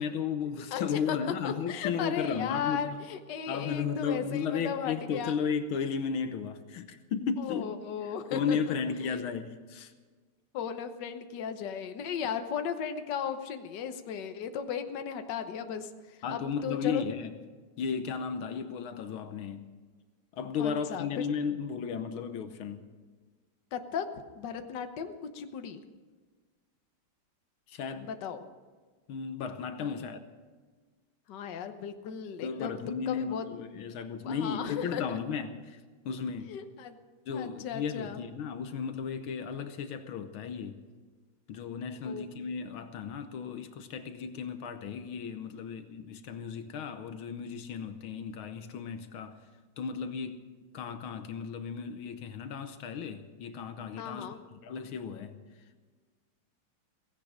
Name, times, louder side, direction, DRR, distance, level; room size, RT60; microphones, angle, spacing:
voice 1, 0.0-3.0 3.5-7.8 8.3-9.9 16.2-17.4 17.8-19.7 20.3-22.9 27.7-28.1 29.1-30.3 32.4-36.6 37.3-40.8 41.5-49.4 49.8-50.4 50.7-54.4 54.6-55.4, left 6 dB, 80° left, 1.8 m, -34 dB
voice 2, 0.7-1.2 1.4-5.4 7.4-8.7 9.0-9.2 10.5-17.0 20.6-21.3 23.7-25.8 28.0-28.5 29.8-30.1 31.3-32.8 33.1-33.4 34.2-35.2 36.5-37.0 37.3-38.2 42.0-42.3 54.0-54.4, left 7 dB, 60° left, 1.6 m, -36 dB
17.0 x 16.5 x 5.1 m
omnidirectional pair, 2.3 m